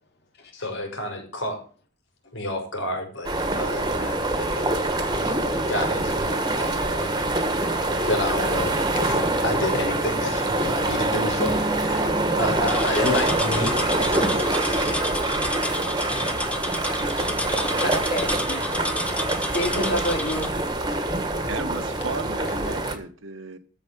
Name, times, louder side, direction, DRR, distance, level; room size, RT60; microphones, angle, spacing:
voice 1, 0.5-1.6 2.3-4.8 5.7-7.1 8.0-12.1 12.4-15.0 17.4-17.5, left 1 dB, 70° left, 5.0 m, -30 dB
sound 1, 3.2-23.0, right 2 dB, 20° right, 1.5 m, -25 dB
sound 2, 11.4-15.7, right 2 dB, 30° left, 1.8 m, -37 dB
sound 3, 12.7-20.5, left 1 dB, 5° left, 1.1 m, -31 dB
voice 2, 16.7-17.1 17.5-18.7 19.5-20.5, left 1 dB, 55° left, 2.9 m, -29 dB
voice 3, 21.5-23.6, right 3 dB, 75° right, 1.3 m, -34 dB
14.0 x 4.9 x 8.8 m
head